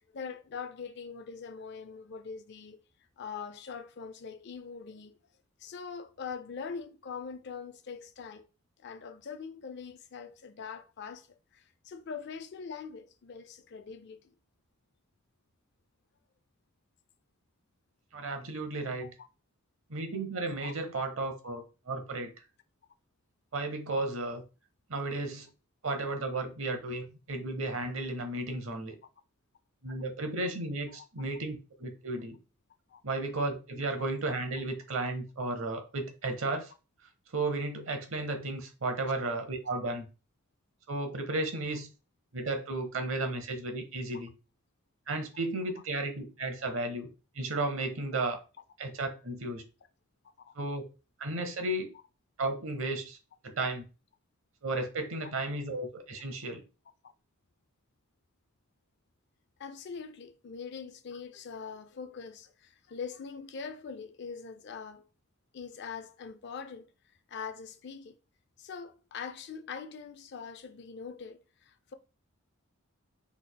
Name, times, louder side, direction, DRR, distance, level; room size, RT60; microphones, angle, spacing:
voice 1, 0.1-2.8 3.2-5.2 5.6-8.5 8.8-14.2 19.0-19.1 20.6-20.7 30.9-31.0 32.9-33.0 50.5-50.6 59.6-65.1 65.5-66.9 67.3-68.2 68.6-71.9, left 6 dB, 50° left, 0.4 m, -43 dB
voice 2, 18.1-19.1 19.9-22.3 23.5-24.4 24.9-25.5 25.8-29.0 29.8-32.4 33.0-36.7 37.3-40.1 40.9-41.9 42.3-44.3 45.1-47.1 47.3-48.4 48.8-49.6 50.5-50.9 51.2-51.9 52.4-53.2 53.4-53.8 54.6-56.6, right 2 dB, 70° right, 0.8 m, -34 dB
3.9 x 3.3 x 2.2 m
head